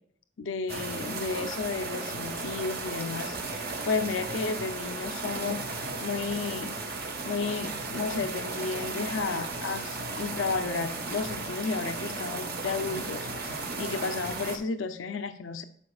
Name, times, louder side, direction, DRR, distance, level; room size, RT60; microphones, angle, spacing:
voice 1, 0.4-5.7 6.0-6.7 7.2-15.6, left 4 dB, 85° left, 9 dB, 0.6 m, -33 dB
sound 1, 0.7-14.6, right 3 dB, 55° right, 1.3 m, -35 dB
11.5 x 5.1 x 2.4 m, 0.63 s
head